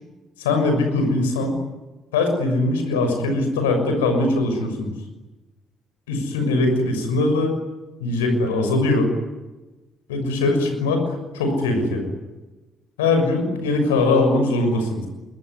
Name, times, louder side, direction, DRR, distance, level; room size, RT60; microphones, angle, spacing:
voice 1, 0.4-1.5 2.1-4.9 6.1-7.6 8.0-9.1 10.1-12.1 13.0-15.1, left 2 dB, 80° left, 6 dB, 6.3 m, -21 dB
26.5 x 22.5 x 9.9 m, 1.1 s
hypercardioid pair, 50°, 0 cm